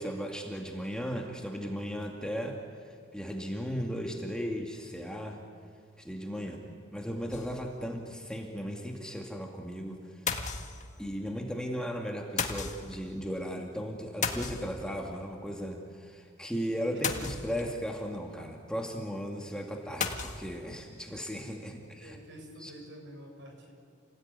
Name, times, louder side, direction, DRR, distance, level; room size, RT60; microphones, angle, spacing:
voice 1, 0.0-2.6 2.9-5.4 6.0-6.6 6.9-10.2 11.0-22.2 22.6-22.7, equal, 5° left, 1 dB, 2.2 m, -36 dB
voice 2, 6.4-6.7 16.9-17.2 21.8-23.7, equal, 65° right, 2 dB, 7.0 m, -49 dB
sound 1, 7.3-7.9 8.3-8.4 8.6-8.7 10.3-11.1 12.4-13.0 14.2-15.1 17.0-17.8 20.0-20.5, left 5 dB, 40° left, 1.7 m, -34 dB
29.5 x 19.0 x 9.6 m, 2.2 s
head